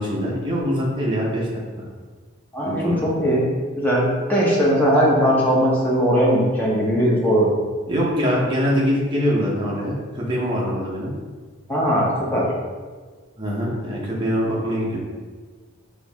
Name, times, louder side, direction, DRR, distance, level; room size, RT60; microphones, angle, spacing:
voice 1, 0.0-1.5 1.8-1.9 2.6-3.0 7.9-11.1 13.4-15.0, equal, 20° right, -4 dB, 0.8 m, -23 dB
voice 2, 2.5-3.4 3.7-7.5 11.7-12.5, equal, 10° left, -5 dB, 0.8 m, -19 dB
4.5 x 3.0 x 3.5 m, 1.4 s
head